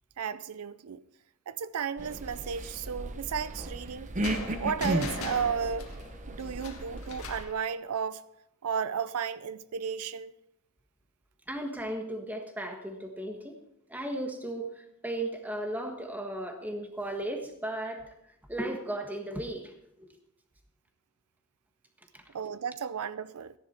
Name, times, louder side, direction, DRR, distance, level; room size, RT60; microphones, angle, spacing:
voice 1, 0.2-1.0 1.5-4.1 4.6-5.9 6.3-8.2 8.6-10.3 22.3-23.5, right 7 dB, 85° right, 0.5 m, -33 dB
sound 1, 2.0-7.4, right 1 dB, 35° right, 0.9 m, -35 dB
sound 2, 4.2-7.6, left 3 dB, 75° left, 1.8 m, -40 dB
voice 2, 11.5-13.6 13.9-18.0 18.5-20.1 22.1-22.2, right 1 dB, 10° right, 1.5 m, -36 dB
14.0 x 10.5 x 4.4 m
head